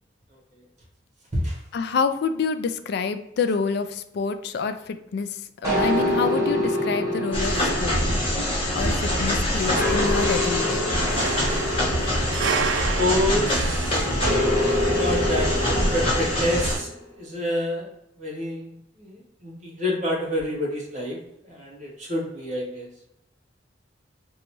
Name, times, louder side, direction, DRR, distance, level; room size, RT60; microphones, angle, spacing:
voice 1, 0.3-0.6 1.3-1.6 12.7-14.1 14.8-17.9 18.2-18.7 19.0-22.9, left 1 dB, 40° right, -3 dB, 1.3 m, -28 dB
voice 2, 1.7-8.4 8.7-10.9, left 5 dB, 60° left, 9 dB, 0.3 m, -28 dB
sound 1, 5.6-9.2 9.7-13.5 14.2-16.9, left 1 dB, 15° right, 1.2 m, -27 dB
sound 2, 7.3-16.8, equal, 30° left, 0.9 m, -25 dB
sound 3, 11.1-16.8, right 5 dB, 75° right, 0.4 m, -32 dB
3.9 x 2.3 x 2.9 m, 0.83 s
head